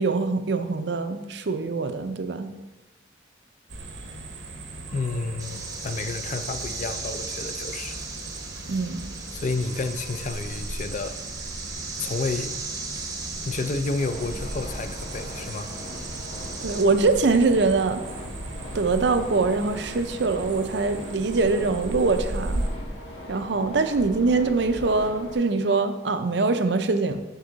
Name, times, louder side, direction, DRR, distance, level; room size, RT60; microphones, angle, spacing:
voice 1, 0.0-2.5 8.7-9.2 16.6-18.0 18.7-22.6 23.3-27.2, right 3 dB, 65° right, 9 dB, 0.6 m, -23 dB
sound 1, 3.7-22.7, right 2 dB, 90° right, 1.1 m, -37 dB
voice 2, 4.9-8.1 9.3-11.2 12.0-12.5 13.4-15.7, left 3 dB, 40° left, 10 dB, 0.4 m, -30 dB
sound 2, 5.4-16.8, right 3 dB, 20° right, 0.8 m, -37 dB
sound 3, 14.0-25.3, left 1 dB, 80° left, 1.5 m, -39 dB
6.9 x 6.6 x 4.0 m, 1.1 s
head